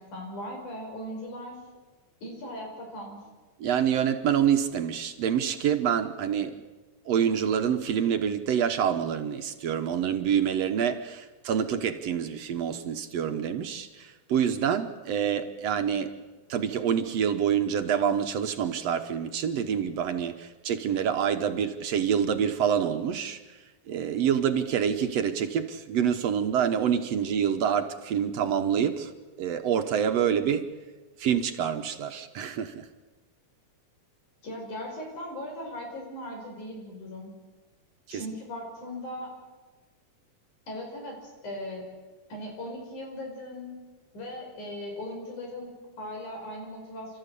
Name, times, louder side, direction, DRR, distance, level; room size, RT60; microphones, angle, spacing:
voice 1, 0.0-1.6 2.2-3.2 34.4-37.3 38.1-39.3 40.7-41.9 42.3-43.7 44.1-47.2, left 1 dB, 85° left, 6.9 m, -38 dB
voice 2, 3.6-6.6 7.1-16.2 16.5-23.4 23.9-29.1 29.4-30.7 31.2-32.9 38.1-38.2, right 8 dB, 65° right, 2.0 m, -27 dB
30.0 x 13.5 x 8.3 m
omnidirectional pair, 3.4 m